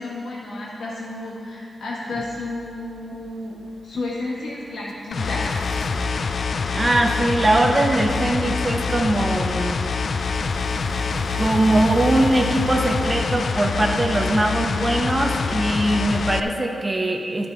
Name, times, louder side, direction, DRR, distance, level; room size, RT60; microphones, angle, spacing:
voice 1, 0.0-3.6 3.8-5.5, left 2 dB, 80° left, -4 dB, 1.7 m, -31 dB
sound 1, 2.2-16.4, right 4 dB, 60° right, 0.7 m, -39 dB
sound 2, 5.1-16.4, left 5 dB, 55° left, 0.3 m, -25 dB
voice 2, 6.7-9.8 11.4-17.5, right 1 dB, 20° right, 1 dB, 1.0 m, -21 dB
12.5 x 6.8 x 4.1 m, 2.5 s
wide cardioid pair, 140°, 0 cm